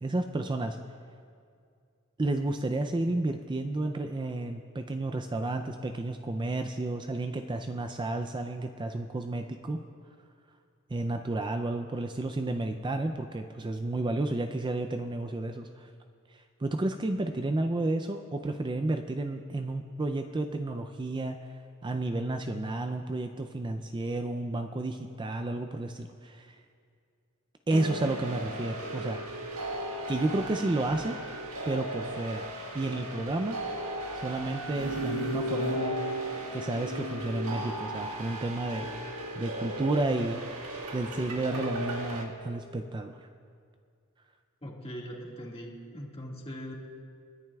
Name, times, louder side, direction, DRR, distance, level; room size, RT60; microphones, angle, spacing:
voice 1, 0.0-0.8 2.2-9.8 10.9-15.9 16.3-21.5 21.8-26.6 27.7-29.5 30.1-31.2 31.7-32.5 32.7-33.6 34.1-36.0 36.5-38.9 39.3-43.2, right 2 dB, 20° right, 6 dB, 0.4 m, -31 dB
sound 1, 27.7-42.2, right 1 dB, 75° right, 1.6 m, -36 dB
voice 2, 44.6-46.7, equal, 25° left, -2 dB, 1.8 m, -41 dB
29.5 x 10.5 x 2.3 m, 2.3 s
head